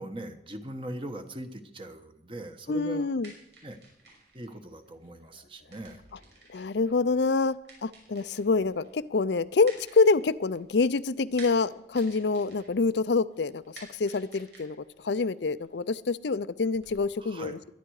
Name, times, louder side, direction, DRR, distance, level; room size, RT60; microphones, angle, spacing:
voice 1, 0.0-3.1 3.6-3.8 4.3-6.0 17.2-17.6, right 1 dB, 30° right, 7 dB, 1.2 m, -40 dB
voice 2, 2.7-3.3 6.5-17.7, left 4 dB, 80° left, 14 dB, 0.5 m, -26 dB
sound 1, 2.9-16.9, right 3 dB, 85° right, 6.3 m, -54 dB
22.0 x 10.5 x 4.8 m, 0.88 s
head